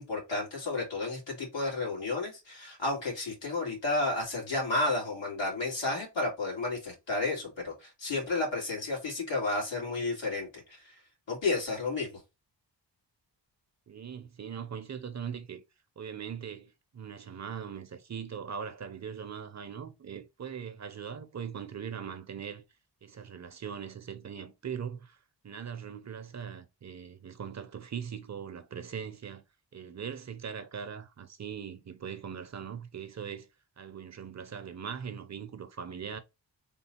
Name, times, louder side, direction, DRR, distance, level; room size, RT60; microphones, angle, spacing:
voice 1, 0.0-10.9 11.3-12.1, left 2 dB, 85° left, 2.2 m, -32 dB
voice 2, 13.9-15.6 16.0-22.6 23.0-25.2 25.4-29.4 29.7-33.5 33.8-36.2, right 7 dB, 40° right, 0.5 m, -40 dB
3.6 x 2.3 x 4.2 m
wide cardioid pair, 145°, 43 cm